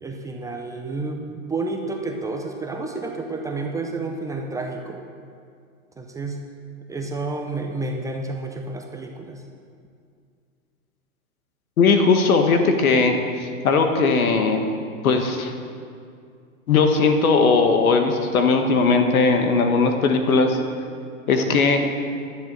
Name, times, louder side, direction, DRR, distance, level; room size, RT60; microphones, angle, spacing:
voice 1, 0.0-5.0 6.0-6.4 6.9-9.4, right 3 dB, 10° right, 2 dB, 0.5 m, -30 dB
voice 2, 11.8-14.7 15.0-15.5 16.7-20.6 21.3-21.9, left 4 dB, 80° left, 5 dB, 1.5 m, -18 dB
11.5 x 7.2 x 7.6 m, 2.3 s
hypercardioid pair, 130°, 41 cm